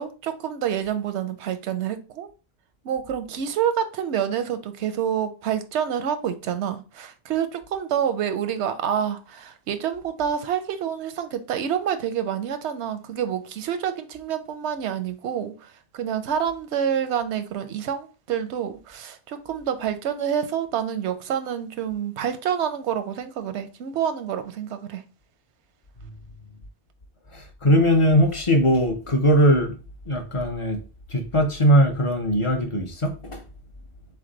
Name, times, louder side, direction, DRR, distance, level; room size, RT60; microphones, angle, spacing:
voice 1, 0.0-2.3 2.8-25.0, right 9 dB, 90° right, 0.9 m, -27 dB
voice 2, 27.3-29.8 30.1-30.8 31.1-33.4, equal, 35° left, 0.6 m, -20 dB
3.9 x 3.3 x 3.8 m
omnidirectional pair, 1.1 m